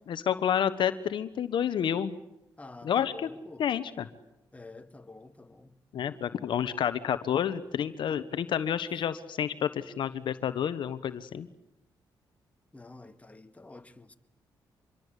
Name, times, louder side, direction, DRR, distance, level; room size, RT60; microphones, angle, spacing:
voice 1, 0.1-2.1 2.8-3.3 3.6-4.1 5.9-11.5, left 9 dB, 70° left, 1.2 m, -29 dB
voice 2, 2.6-3.6 4.5-5.8 6.5-6.9 12.7-14.1, left 2 dB, 15° left, 2.0 m, -49 dB
26.0 x 22.5 x 8.3 m
cardioid pair, 70°, 8 cm